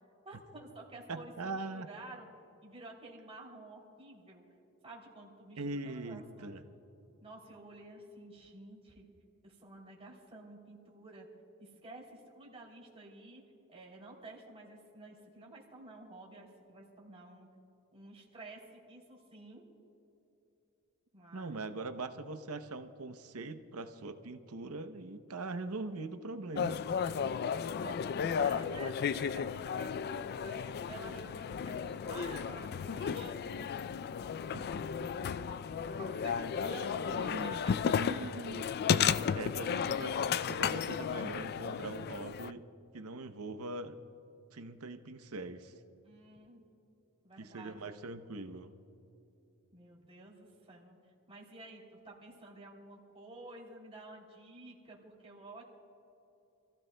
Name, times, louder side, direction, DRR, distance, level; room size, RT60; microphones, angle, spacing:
voice 1, 0.2-2.3 2.6-4.4 4.8-6.6 7.2-9.1 9.4-11.3 11.6-13.4 13.7-17.5 17.9-19.7 21.1-21.6 27.8-33.4 34.6-34.7 35.6-38.1 46.0-46.6 47.2-47.9 49.7-51.0 51.3-55.6, right 2 dB, 25° right, -2 dB, 3.0 m, -51 dB
voice 2, 1.1-1.9 5.6-6.6 21.3-26.8 34.5-34.7 37.1-37.6 38.0-38.7 39.3-42.6 42.9-44.0 44.5-45.7 47.4-48.7, right 3 dB, 70° right, 8 dB, 0.8 m, -42 dB
sound 1, 26.6-42.5, left 7 dB, 45° left, 0.3 m, -34 dB
29.0 x 15.0 x 2.2 m, 2.9 s
head